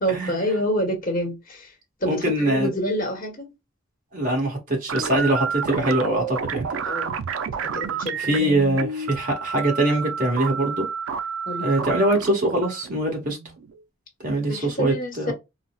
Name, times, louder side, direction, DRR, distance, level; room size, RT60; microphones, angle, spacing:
voice 1, 0.0-1.7 2.0-3.5 4.9-5.1 6.8-7.2 7.6-8.6 11.5-11.7 14.5-15.3, equal, 45° left, 1.0 m, -27 dB
voice 2, 2.0-2.7 4.1-6.7 8.2-10.8 11.6-13.4 14.2-15.3, right 1 dB, 40° right, 1.3 m, -23 dB
sound 1, 4.9-13.8, right 6 dB, 75° right, 0.4 m, -30 dB
4.0 x 2.0 x 2.3 m
head